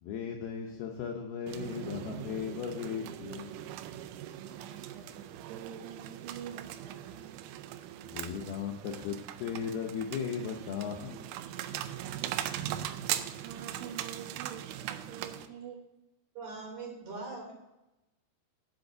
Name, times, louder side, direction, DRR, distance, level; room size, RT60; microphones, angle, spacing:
voice 1, 0.0-3.8 8.1-11.5, left 7 dB, 85° left, 1 dB, 2.2 m, -37 dB
sound 1, 1.5-15.5, right 12 dB, 90° right, 3.1 m, -40 dB
voice 2, 4.2-7.6 13.3-15.9, right 8 dB, 70° right, 3 dB, 3.1 m, -47 dB
voice 3, 16.3-17.5, right 3 dB, 40° right, -2 dB, 3.6 m, -41 dB
8.0 x 6.9 x 6.9 m, 0.97 s
omnidirectional pair, 5.4 m